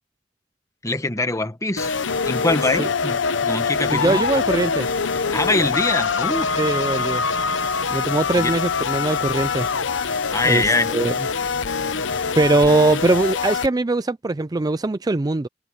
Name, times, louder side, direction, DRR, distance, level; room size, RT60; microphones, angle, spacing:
voice 1, 0.8-4.2 5.3-6.5 8.3-8.5 10.3-10.9, left 2 dB, 15° left, 1.5 m, -23 dB
sound 1, 1.8-13.7, left 5 dB, 80° left, 0.8 m, -24 dB
sound 2, 3.8-13.3, left 1 dB, 55° left, 2.2 m, -42 dB
voice 2, 3.9-4.9 6.6-7.2 7.9-9.7 10.4-11.1 12.4-15.5, right 2 dB, 20° right, 0.4 m, -21 dB
head